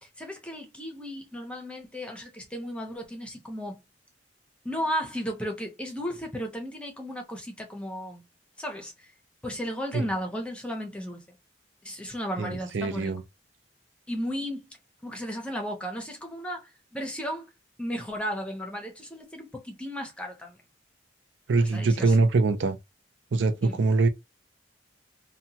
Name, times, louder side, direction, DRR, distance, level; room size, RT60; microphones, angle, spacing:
voice 1, 0.2-3.8 4.6-8.2 8.6-9.1 9.4-11.4 11.8-13.1 14.1-14.7 15.0-17.5 17.8-20.6 21.6-22.2 23.6-23.8, equal, 5° left, 0.6 m, -34 dB
voice 2, 12.4-13.2 21.5-22.8 23.3-24.1, right 3 dB, 70° right, 0.4 m, -23 dB
2.8 x 2.2 x 2.8 m
head